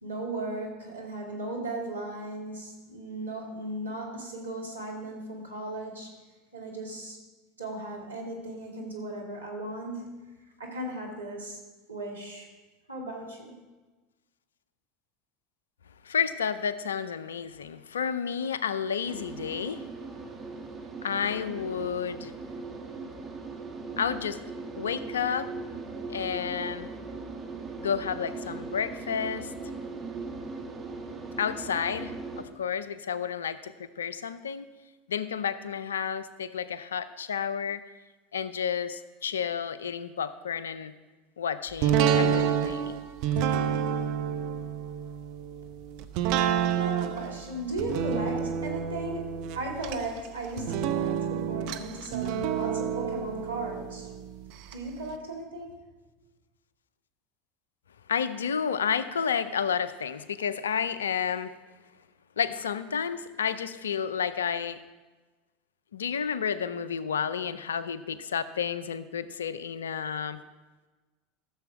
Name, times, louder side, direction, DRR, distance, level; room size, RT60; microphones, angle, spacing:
voice 1, 0.0-6.1 6.5-7.2 7.6-10.2 10.6-11.6 11.9-12.5 12.9-13.5 46.7-54.1 54.7-55.8, right 2 dB, 90° right, -2 dB, 2.1 m, -36 dB
voice 2, 16.0-19.8 21.0-22.3 24.0-24.4 24.8-25.5 26.1-26.9 27.8-29.5 31.4-34.7 35.1-37.8 38.3-40.9 41.4-43.0 43.4-43.5 58.1-61.6 62.4-64.8 65.9-70.4, left 7 dB, 80° left, 14 dB, 0.5 m, -31 dB
sound 1, 19.1-32.4, right 3 dB, 25° right, 1.5 m, -39 dB
sound 2, 41.8-54.7 55.1-55.2, right 8 dB, 55° right, 0.6 m, -29 dB
13.5 x 7.0 x 4.8 m, 1.2 s
hypercardioid pair, 80°, 0 cm